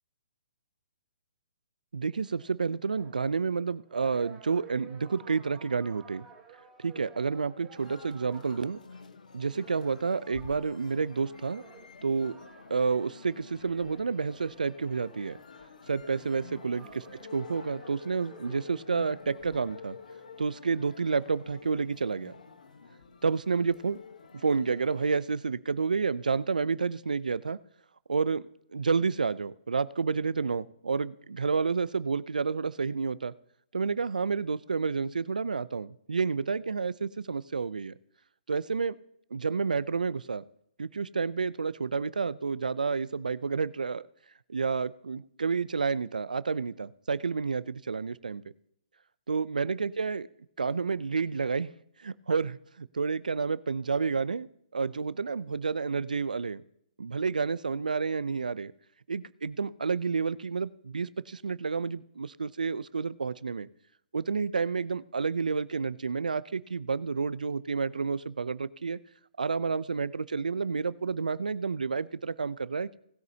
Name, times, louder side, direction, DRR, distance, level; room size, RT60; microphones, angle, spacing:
voice 1, 1.9-6.3 6.8-8.8 9.3-11.6 12.0-12.3 12.7-15.4 15.9-17.1 17.3-20.0 20.4-22.3 23.2-24.0 24.4-27.6 28.1-28.4 28.7-33.3 33.7-37.9 38.5-39.0 39.3-40.4 40.8-44.0 44.5-48.4 49.3-50.3 50.6-51.7 52.0-54.5 54.7-56.6 57.0-58.7 59.1-63.7 64.1-69.0 69.4-73.0, right 5 dB, 90° right, 18 dB, 0.5 m, -30 dB
sound 1, 2.2-20.4, right 7 dB, 10° right, 3.7 m, -55 dB
sound 2, 7.8-25.2, left 5 dB, 75° left, 1.1 m, -50 dB
19.0 x 9.3 x 2.8 m, 0.71 s
hypercardioid pair, 145°, 4 cm